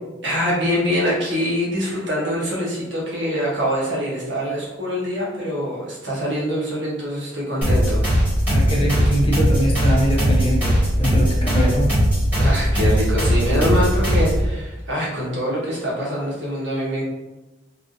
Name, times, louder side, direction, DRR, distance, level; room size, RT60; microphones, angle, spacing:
voice 1, 0.2-8.0 12.4-17.0, equal, 65° right, -6 dB, 1.2 m, -24 dB
sound 1, 7.6-14.5, equal, 10° right, 1.5 m, -19 dB
voice 2, 8.5-11.9, equal, 25° left, -2 dB, 0.5 m, -22 dB
3.5 x 2.4 x 2.5 m, 1.1 s
head